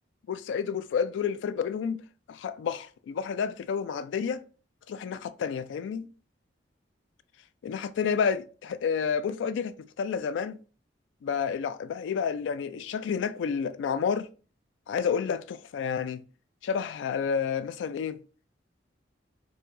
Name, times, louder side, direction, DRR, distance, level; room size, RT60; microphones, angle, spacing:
voice 1, 0.3-2.0 2.3-4.4 4.9-6.1 7.6-10.6 11.2-14.3 14.9-16.2 16.6-18.2, left 6 dB, 85° left, 0.3 m, -30 dB
4.5 x 2.0 x 2.5 m
head